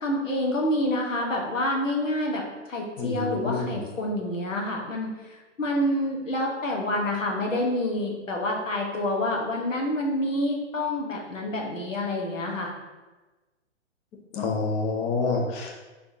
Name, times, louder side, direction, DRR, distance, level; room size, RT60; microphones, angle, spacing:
voice 1, 0.0-2.4 2.7-12.7, left 1 dB, 85° left, 0 dB, 1.1 m, -27 dB
voice 2, 3.0-3.6 14.3-15.7, left 4 dB, 20° left, 0 dB, 0.5 m, -27 dB
4.9 x 3.3 x 2.7 m, 1.2 s
figure-of-eight pair, 120°, 37 cm